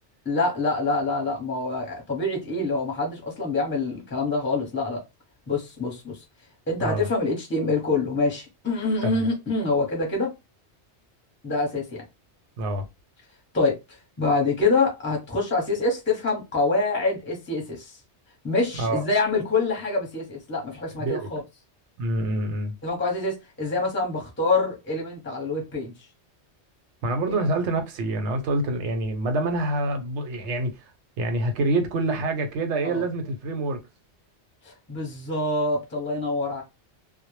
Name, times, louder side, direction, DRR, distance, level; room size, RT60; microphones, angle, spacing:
voice 1, 0.2-5.0 5.5-6.1 6.7-10.3 11.4-12.0 13.5-13.8 14.2-18.0 18.4-21.4 22.8-25.9 27.3-27.4 32.8-33.0 34.6-36.6, left 3 dB, 15° left, 0.6 m, -26 dB
voice 2, 21.0-21.3 22.0-22.7 27.0-30.8 31.2-33.8, right 2 dB, 85° right, 0.9 m, -26 dB
2.0 x 2.0 x 3.0 m
omnidirectional pair, 1.2 m